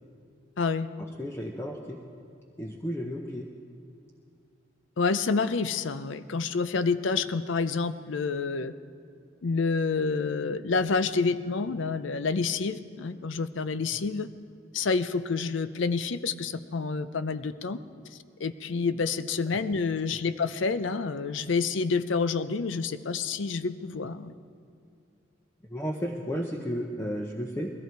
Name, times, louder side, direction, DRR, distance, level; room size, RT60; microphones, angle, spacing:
voice 1, 0.6-0.9 5.0-8.7 9.4-14.3 14.7-17.8 18.4-24.3, left 4 dB, 65° left, 13 dB, 0.5 m, -28 dB
voice 2, 1.2-2.0 2.6-3.5 25.7-27.7, equal, 15° left, 0 dB, 0.7 m, -33 dB
20.5 x 14.0 x 4.6 m, 2.3 s
head